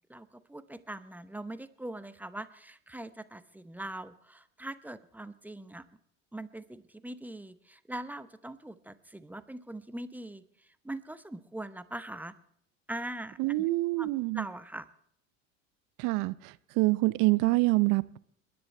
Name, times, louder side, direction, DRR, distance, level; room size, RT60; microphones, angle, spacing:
voice 1, 0.1-5.8 6.3-12.4 12.9-13.6 14.0-14.1 14.3-14.9, right 1 dB, 5° right, 0.8 m, -42 dB
voice 2, 13.4-14.4 16.0-18.2, right 21 dB, 55° right, 0.7 m, -26 dB
30.0 x 10.5 x 3.3 m
hypercardioid pair, 75°, 38 cm